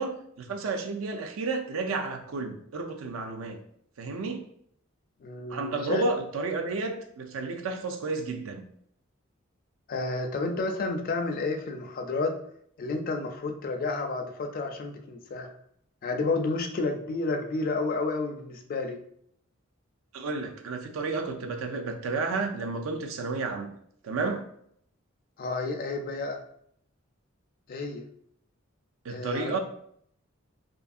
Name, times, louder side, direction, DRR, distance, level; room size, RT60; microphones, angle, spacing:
voice 1, 0.0-3.6 4.0-4.4 5.5-8.7 20.1-23.7 24.0-24.4 29.0-29.6, right 3 dB, 75° right, 0.4 m, -31 dB
voice 2, 5.2-6.0 9.9-12.3 12.8-15.5 16.0-19.0 25.4-26.4 27.7-28.0 29.1-29.6, left 3 dB, 45° left, 0.3 m, -31 dB
2.6 x 2.5 x 2.4 m
head